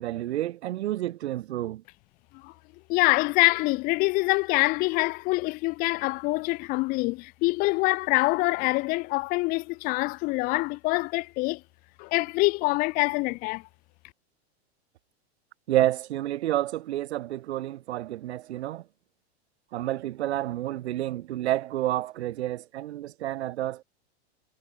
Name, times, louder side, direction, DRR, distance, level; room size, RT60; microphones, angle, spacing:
voice 1, 0.0-1.8 15.7-18.8 19.7-23.8, right 14 dB, 75° right, 2.8 m, -29 dB
voice 2, 2.9-11.6 12.0-13.6, left 24 dB, 25° left, 0.6 m, -25 dB
supercardioid pair, 160°, 33 cm